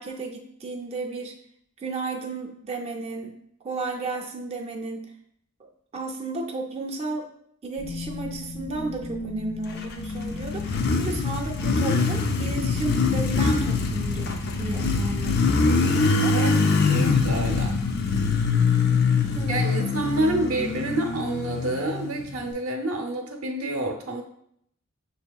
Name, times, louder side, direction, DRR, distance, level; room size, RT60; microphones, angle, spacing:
voice 1, 0.0-1.3 1.8-3.4 3.6-5.1 5.9-7.3 7.6-16.4 18.1-18.3 18.6-19.0 19.3-19.6, right 3 dB, 30° right, 0 dB, 0.4 m, -34 dB
sound 1, 7.8-19.8, left 2 dB, 80° left, 1.4 m, -36 dB
Motorcycle, 9.8-22.5, left 4 dB, 50° left, 0.4 m, -24 dB
voice 2, 16.9-17.8 19.5-24.2, right 2 dB, 90° right, 3 dB, 0.7 m, -28 dB
6.4 x 2.7 x 2.3 m, 0.71 s
head